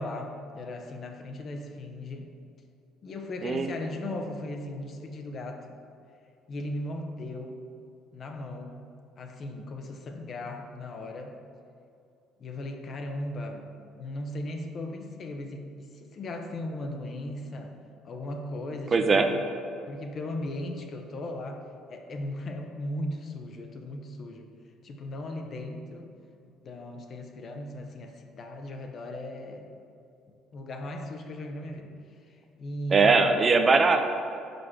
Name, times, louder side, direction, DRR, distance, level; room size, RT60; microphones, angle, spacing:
voice 1, 0.0-2.3 3.0-5.8 6.5-7.6 8.1-11.4 12.4-17.8 18.0-19.3 19.9-24.6 24.8-26.1 26.6-29.7 30.5-33.4, left 1 dB, 45° left, 4 dB, 0.8 m, -37 dB
voice 2, 18.9-19.3 32.9-34.0, right 4 dB, 35° right, 6 dB, 0.5 m, -20 dB
5.2 x 4.8 x 5.9 m, 2.5 s
supercardioid pair, 90°, 0 cm